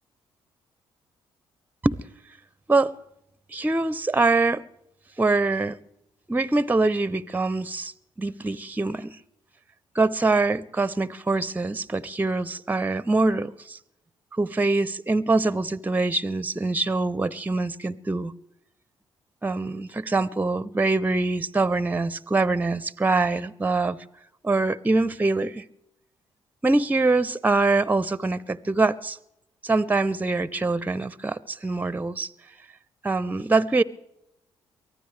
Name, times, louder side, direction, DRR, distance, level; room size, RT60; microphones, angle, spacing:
voice 1, 3.5-4.6 5.2-5.8 6.3-9.2 9.9-13.8 14.4-18.3 19.4-24.0 24.4-25.6 26.6-29.2 29.6-32.3 33.0-33.8, right 3 dB, 15° right, 0.6 m, -24 dB
23.5 x 15.0 x 3.3 m
hypercardioid pair, 45°, 12 cm